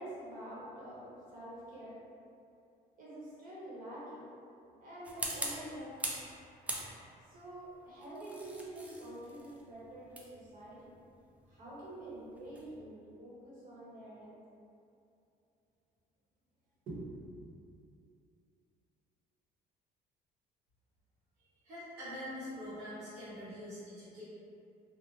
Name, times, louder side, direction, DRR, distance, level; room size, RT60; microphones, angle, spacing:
voice 1, 0.0-2.1 3.0-4.3 4.8-6.0 7.3-10.9 11.5-14.4 16.9-17.2 17.5-17.6, right 1 dB, 55° right, -8 dB, 1.0 m, -47 dB
sound 1, 5.0-6.3 6.7-7.3 8.0-12.8, right 1 dB, 10° right, 0.3 m, -42 dB
voice 2, 21.6-24.2, equal, 75° right, -14 dB, 1.1 m, -44 dB
2.6 x 2.0 x 2.9 m, 2.6 s
cardioid pair, 110°, 17 cm